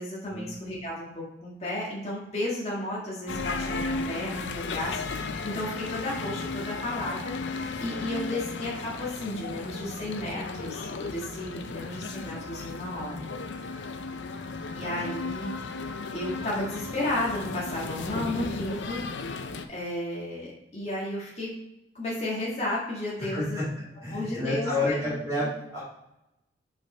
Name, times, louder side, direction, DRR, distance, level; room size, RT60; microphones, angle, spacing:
voice 1, 0.0-13.3 14.7-15.5 16.1-19.0 19.7-21.5 21.9-23.6 24.1-25.0, left 1 dB, 35° left, -6 dB, 1.6 m, -33 dB
sound 1, 3.3-19.7, left 3 dB, 85° left, 0.5 m, -35 dB
voice 2, 23.2-23.7 24.0-25.8, left 1 dB, 20° right, -9 dB, 2.5 m, -30 dB
5.2 x 5.1 x 4.3 m, 0.87 s
head